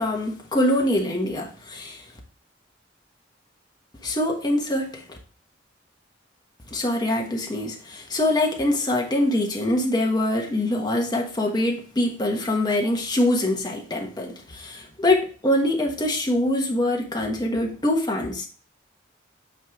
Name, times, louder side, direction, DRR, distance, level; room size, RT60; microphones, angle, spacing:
voice 1, 0.0-2.0 4.0-5.2 6.7-18.5, left 1 dB, 20° left, 1 dB, 1.2 m, -24 dB
8.8 x 3.3 x 3.6 m, 0.38 s
head